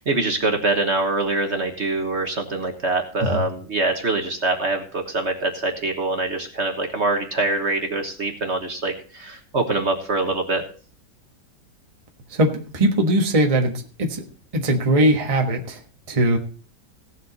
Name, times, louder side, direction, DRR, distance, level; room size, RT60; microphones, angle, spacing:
voice 1, 0.0-10.6, right 2 dB, 40° right, 4 dB, 1.5 m, -24 dB
voice 2, 12.3-14.3 14.5-15.8 16.1-16.4, right 1 dB, 20° right, 3 dB, 1.3 m, -20 dB
17.0 x 7.5 x 4.1 m, 0.40 s
omnidirectional pair, 1.8 m